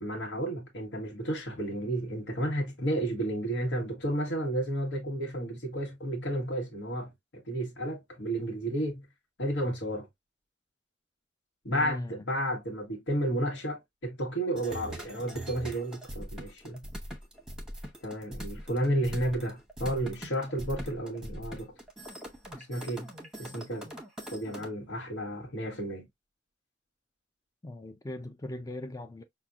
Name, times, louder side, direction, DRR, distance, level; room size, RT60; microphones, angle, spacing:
voice 1, 0.0-9.1 9.4-10.1 11.6-16.8 18.0-21.7 22.5-23.1 23.4-23.9 24.3-26.1, right 1 dB, 75° left, 1.1 m, -32 dB
voice 2, 11.7-12.2 27.6-29.2, left 1 dB, 20° left, 0.4 m, -40 dB
sound 1, 14.6-24.7, equal, 5° right, 0.8 m, -42 dB
5.7 x 2.2 x 2.4 m
head